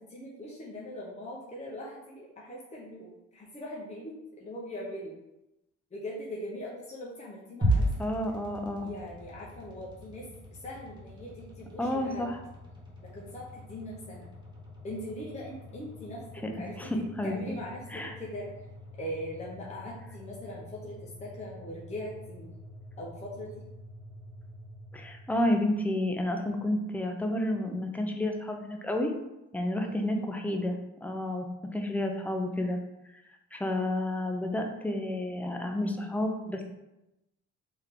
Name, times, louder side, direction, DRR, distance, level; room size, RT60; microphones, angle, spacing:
voice 1, 0.0-5.1 5.9-7.9 8.8-10.3 10.6-12.3 13.0-14.3 14.8-16.2 16.6-16.9 17.2-18.5 19.0-22.5 23.0-23.6 29.6-30.1, left 1 dB, 25° left, -5 dB, 0.8 m, -41 dB
sound 1, 7.6-25.8, right 1 dB, 15° right, 1.3 m, -39 dB
voice 2, 8.0-8.9 11.8-12.4 16.8-17.3 17.9-18.1 24.9-29.1 29.5-31.5 31.7-32.8 33.5-36.7, left 1 dB, 5° left, 3 dB, 0.5 m, -30 dB
3.6 x 2.9 x 3.6 m, 0.93 s
cardioid pair, 90°, 30 cm